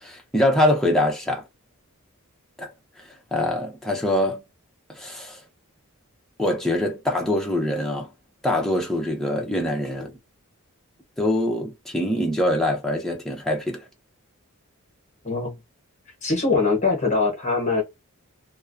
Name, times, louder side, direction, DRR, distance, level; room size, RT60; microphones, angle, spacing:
voice 1, 0.0-1.4 2.6-2.7 3.3-4.4 4.9-5.4 6.4-8.1 8.4-10.1 11.2-13.8, left 1 dB, ahead, 0.6 m, -24 dB
voice 2, 16.2-17.8, left 3 dB, 35° left, 1.0 m, -22 dB
2.2 x 2.2 x 2.5 m
head